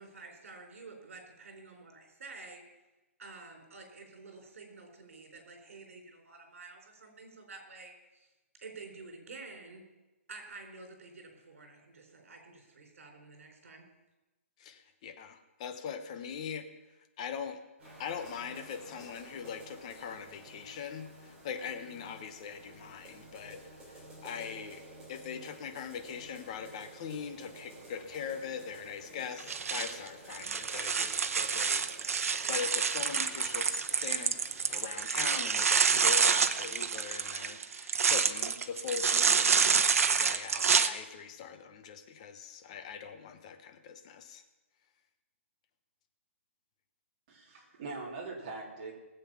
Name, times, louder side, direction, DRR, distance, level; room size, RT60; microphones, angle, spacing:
voice 1, 0.0-2.6 3.2-8.3 8.6-9.8 10.3-13.9, right 3 dB, 70° right, 3 dB, 4.7 m, -50 dB
voice 2, 14.6-16.7 17.2-17.6 18.0-23.6 23.9-24.8 25.1-34.4 34.7-44.4, left 7 dB, 25° left, 9 dB, 0.9 m, -41 dB
sound 1, 17.8-34.9, right 2 dB, 10° right, 3.3 m, -52 dB
sound 2, 29.4-40.9, right 6 dB, 90° right, 0.9 m, -28 dB
voice 3, 47.3-49.0, right 3 dB, 30° right, -3 dB, 3.3 m, -42 dB
19.5 x 8.1 x 5.8 m, 1.1 s
hypercardioid pair, 175°, 8 cm